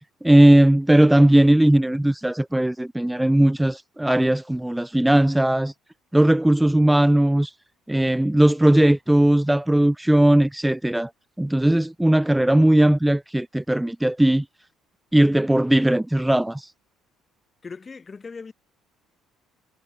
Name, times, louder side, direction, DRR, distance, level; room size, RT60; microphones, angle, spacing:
voice 1, 0.2-5.7 6.1-7.5 7.9-11.1 11.4-14.4 15.1-16.7, right 1 dB, 5° right, 0.6 m, -18 dB
voice 2, 17.6-18.5, left 4 dB, 30° left, 7.1 m, -38 dB
hypercardioid pair, 55°, 0 cm